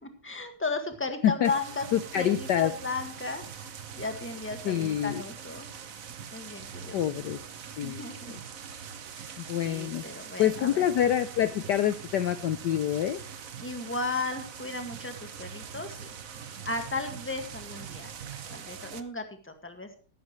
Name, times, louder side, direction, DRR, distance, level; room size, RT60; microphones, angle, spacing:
voice 1, 0.0-3.7 4.0-5.7 6.3-7.0 7.8-8.3 9.2-9.3 9.6-10.8 13.6-16.1 16.6-18.1 18.5-19.9, left 3 dB, 5° left, 6 dB, 1.6 m, -35 dB
sound 1, 1.4-19.0, right 7 dB, 50° right, 1.2 m, -43 dB
voice 2, 1.9-2.7 4.6-5.2 6.9-7.4 7.8-8.0 9.4-10.0 10.4-13.2, left 10 dB, 65° left, 11 dB, 1.2 m, -26 dB
14.5 x 12.0 x 3.1 m, 0.39 s
omnidirectional pair, 2.2 m